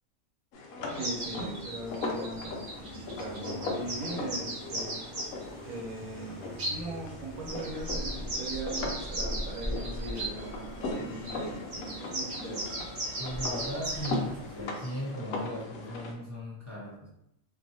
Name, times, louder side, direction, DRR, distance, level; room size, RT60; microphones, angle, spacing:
sound 1, 0.5-16.1, left 2 dB, 85° left, 1.0 m, -39 dB
sound 2, 0.9-5.4 6.6-6.8 7.5-10.3 11.2-11.4 11.7-14.2 14.8-15.0, right 1 dB, 40° right, 0.7 m, -37 dB
sound 3, 1.0-14.6, equal, 25° right, 1.0 m, -43 dB
voice 1, 1.0-5.0 5.6-6.4 6.7-12.7, right 2 dB, 75° right, -3 dB, 1.3 m, -40 dB
voice 2, 13.2-17.1, equal, 20° left, -7 dB, 0.5 m, -37 dB
2.7 x 2.6 x 2.7 m, 0.80 s
omnidirectional pair, 1.4 m